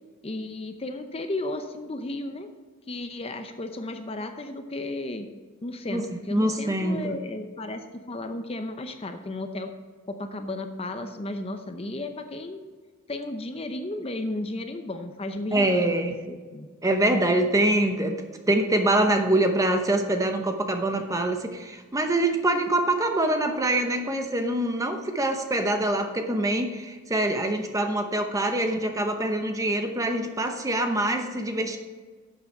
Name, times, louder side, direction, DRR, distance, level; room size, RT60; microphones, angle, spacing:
voice 1, 0.2-2.5 2.9-5.3 5.6-9.7 10.1-12.6 13.1-16.7, left 2 dB, 30° left, 7 dB, 0.7 m, -34 dB
voice 2, 5.9-7.1 15.5-16.1 16.8-18.2 18.5-31.8, right 1 dB, 15° right, 5 dB, 0.8 m, -24 dB
11.5 x 7.1 x 4.4 m, 1.5 s
head